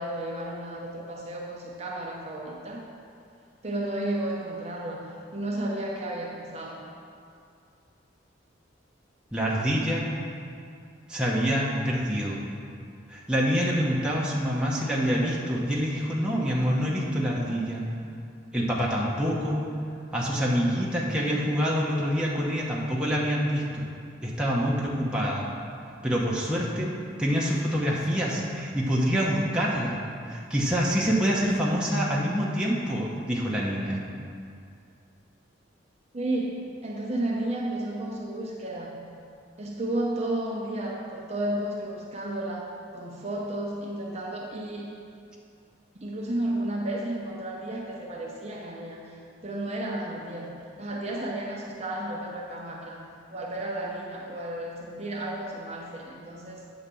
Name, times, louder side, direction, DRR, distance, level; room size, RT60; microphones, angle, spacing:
voice 1, 0.0-2.9 3.6-5.1 5.3-6.9 36.1-39.0 39.6-44.9 46.0-50.5 50.8-53.0 53.3-56.7, right 1 dB, 35° right, -2 dB, 0.8 m, -32 dB
voice 2, 9.3-10.1 11.1-12.4 13.1-17.8 18.5-19.7 20.1-23.9 24.2-25.4 26.0-26.9 27.2-30.0 30.3-34.0, equal, 5° right, -5 dB, 0.9 m, -26 dB
8.9 x 4.0 x 6.9 m, 2.4 s
head